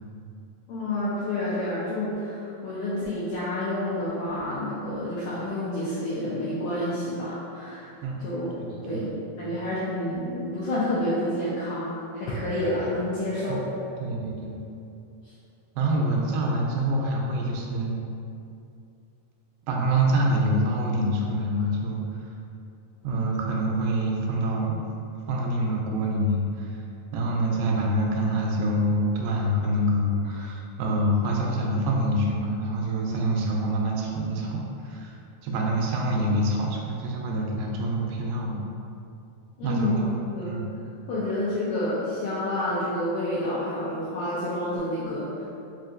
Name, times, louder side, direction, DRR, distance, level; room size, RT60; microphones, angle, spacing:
voice 1, 0.7-7.9 8.2-8.5 8.8-9.1 9.4-13.6 39.6-40.0 40.3-40.6 41.1-45.4, left 1 dB, 80° left, -10 dB, 1.8 m, -29 dB
voice 2, 8.5-9.1 13.5-13.6 14.0-14.6 15.8-18.0 19.7-22.2 23.0-24.8 25.3-26.8 27.1-35.2 35.4-38.7 39.6-40.1 40.5-40.7, right 1 dB, 85° right, -1 dB, 2.2 m, -26 dB
5.5 x 2.5 x 2.5 m, 2.6 s
omnidirectional pair, 4.2 m